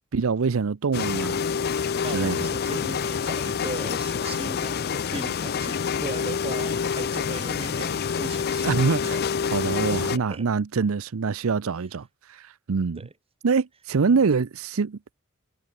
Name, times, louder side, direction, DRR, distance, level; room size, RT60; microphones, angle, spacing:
voice 1, 0.1-1.4 2.1-2.5 8.6-9.2 9.5-13.0 13.4-15.2, right 5 dB, 75° right, 0.6 m, -25 dB
sound 1, 0.9-10.2, left 6 dB, 50° left, 0.5 m, -27 dB
voice 2, 2.0-8.8 9.0-9.2 9.8-10.5 13.0-13.1 13.9-14.2, right 2 dB, 30° right, 1.6 m, -38 dB
head